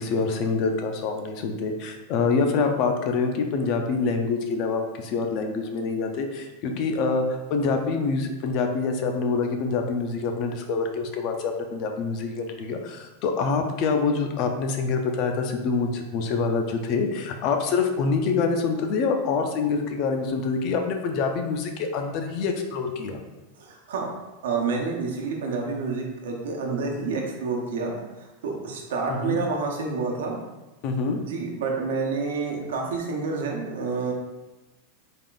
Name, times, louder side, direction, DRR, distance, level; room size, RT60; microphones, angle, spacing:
voice 1, 0.0-23.2 29.1-29.5 30.8-31.2, left 4 dB, 40° left, 4 dB, 0.4 m, -26 dB
voice 2, 23.6-24.1 24.4-30.3 31.2-34.1, right 4 dB, 90° right, 0 dB, 0.9 m, -29 dB
3.5 x 2.4 x 3.8 m, 1.1 s
supercardioid pair, 155°, 0 cm